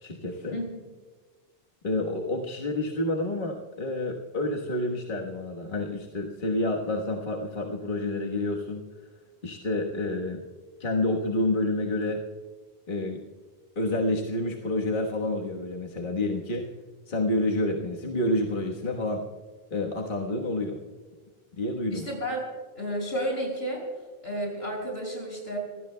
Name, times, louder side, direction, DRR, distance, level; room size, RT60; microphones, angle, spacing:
voice 1, 0.0-0.6 1.8-8.8 9.4-10.4 10.8-12.2 12.9-13.2 13.7-16.7 17.1-19.3 19.7-20.8 21.5-22.0, left 1 dB, 55° left, 0 dB, 1.5 m, -29 dB
voice 2, 21.9-22.5 22.7-23.8 24.2-25.6, equal, 90° left, -1 dB, 6.3 m, -31 dB
25.5 x 16.5 x 2.2 m, 1.4 s
omnidirectional pair, 1.0 m